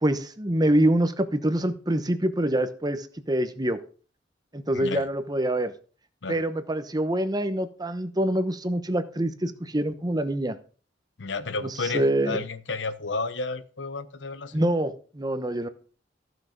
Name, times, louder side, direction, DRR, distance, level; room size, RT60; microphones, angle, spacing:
voice 1, 0.0-3.8 4.5-5.7 6.3-10.6 11.9-12.4 14.5-15.7, right 1 dB, 20° right, 1.0 m, -25 dB
voice 2, 4.7-5.1 6.2-6.4 11.2-14.6, left 3 dB, 75° left, 0.9 m, -32 dB
14.5 x 6.1 x 5.1 m
head